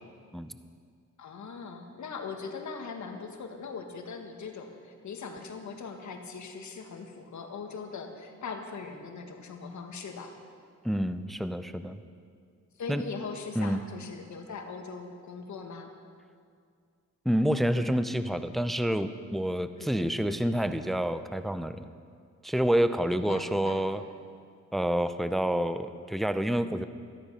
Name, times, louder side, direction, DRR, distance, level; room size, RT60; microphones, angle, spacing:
voice 1, 1.2-10.3 12.8-15.9 19.8-20.2 23.1-23.8, left 5 dB, 70° left, 4 dB, 1.7 m, -40 dB
voice 2, 10.8-12.0 12.9-13.0 13.5-13.8 17.3-21.9 22.4-24.0 24.7-26.8, equal, ahead, 11 dB, 0.6 m, -28 dB
13.5 x 13.5 x 5.6 m, 2.2 s
cardioid pair, 80°, 30 cm